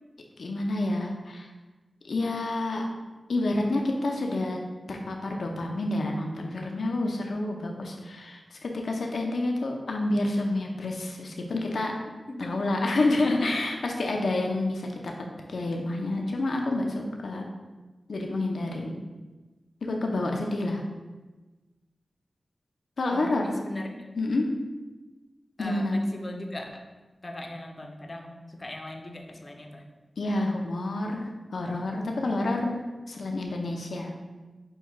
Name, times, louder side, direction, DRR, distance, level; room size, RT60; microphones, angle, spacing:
voice 1, 0.4-1.5 2.0-2.8 3.3-4.6 4.9-11.9 12.4-15.1 15.5-17.5 18.1-19.0 19.8-20.8 23.0-23.5 24.1-24.5 25.6-26.0 30.2-31.2 31.5-34.2, left 2 dB, 80° left, 1 dB, 0.6 m, -28 dB
voice 2, 23.1-24.0 25.6-26.7 27.2-29.8, left 1 dB, 45° left, 3 dB, 0.7 m, -39 dB
6.4 x 2.3 x 3.5 m, 1.2 s
cardioid pair, 45°, 0 cm